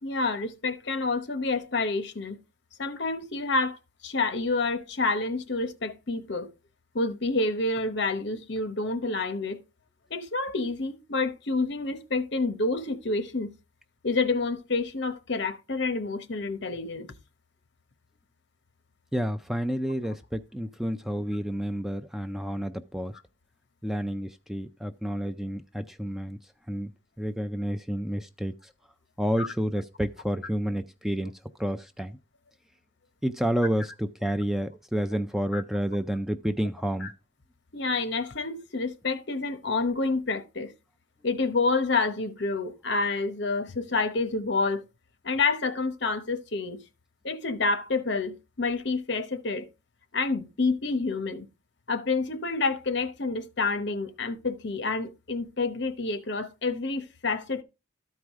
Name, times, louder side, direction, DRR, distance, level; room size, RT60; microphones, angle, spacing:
voice 1, 0.0-2.4 2.8-6.5 6.9-9.6 10.1-13.5 14.0-17.1 29.4-29.5 35.5-35.6 37.0-37.1 37.7-40.7 41.2-44.8 45.2-46.8 47.2-49.7 50.1-51.5 51.9-57.6, left 3 dB, 60° left, 0.9 m, -28 dB
voice 2, 19.1-23.1 23.8-26.4 26.7-26.9 27.2-28.7 29.2-31.3 31.6-32.2 33.2-37.1, equal, ahead, 0.3 m, -30 dB
13.0 x 4.8 x 3.5 m
head